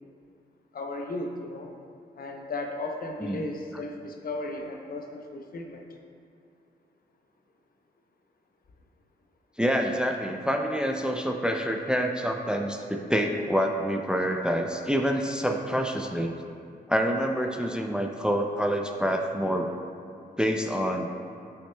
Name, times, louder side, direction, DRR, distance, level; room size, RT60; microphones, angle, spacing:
voice 1, 0.7-1.7 2.2-5.8, left 2 dB, 55° left, 3 dB, 0.7 m, -35 dB
voice 2, 9.6-16.3 16.9-19.7 20.4-21.1, equal, 5° right, 3 dB, 0.5 m, -27 dB
8.4 x 5.6 x 2.2 m, 2.4 s
cardioid pair, 55°, 18 cm